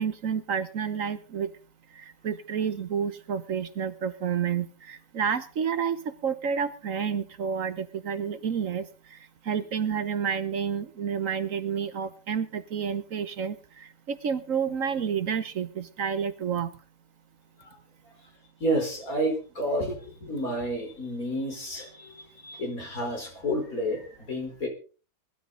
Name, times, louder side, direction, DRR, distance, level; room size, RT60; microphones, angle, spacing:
voice 1, 0.0-1.5 2.0-8.9 9.5-16.7, right 7 dB, 55° right, 13 dB, 1.2 m, -30 dB
voice 2, 18.6-24.7, equal, 55° left, 2 dB, 4.6 m, -30 dB
20.5 x 12.5 x 3.9 m, 0.37 s
omnidirectional pair, 1.8 m